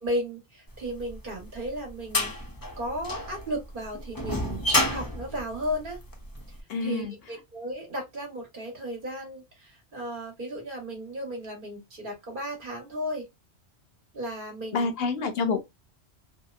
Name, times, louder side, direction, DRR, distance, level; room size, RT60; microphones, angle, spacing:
voice 1, 0.0-2.3 2.8-6.0 6.8-13.3 14.1-14.9, equal, 50° right, 1.1 m, -35 dB
sound 1, 1.1-6.4, left 1 dB, 35° left, 0.3 m, -29 dB
voice 2, 6.7-7.1 14.7-15.6, left 4 dB, 70° left, 0.7 m, -27 dB
2.7 x 2.0 x 2.3 m
omnidirectional pair, 1.1 m